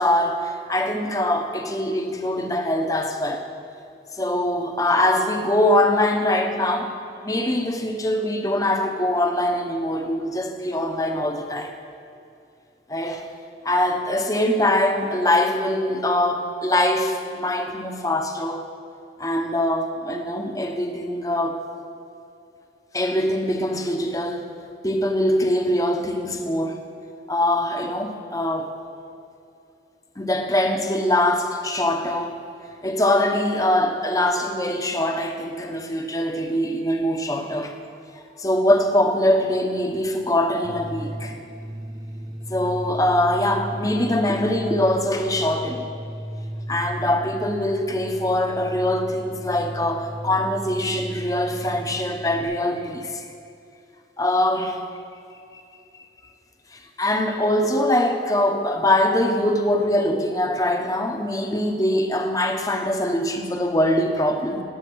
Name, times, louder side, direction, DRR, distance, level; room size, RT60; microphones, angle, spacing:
voice 1, 0.0-3.5 4.1-11.7 12.9-13.3 13.6-18.6 19.2-21.6 22.9-24.5 24.8-26.8 27.3-28.7 30.2-32.4 32.8-37.7 38.4-41.4 42.5-45.9 46.7-53.3 54.2-54.8 55.5-55.6 56.7-64.6, left 1 dB, 20° left, 5 dB, 1.0 m, -23 dB
sound 1, 40.6-52.4, right 1 dB, 20° right, 1.0 m, -35 dB
17.5 x 8.7 x 6.3 m, 2.6 s
head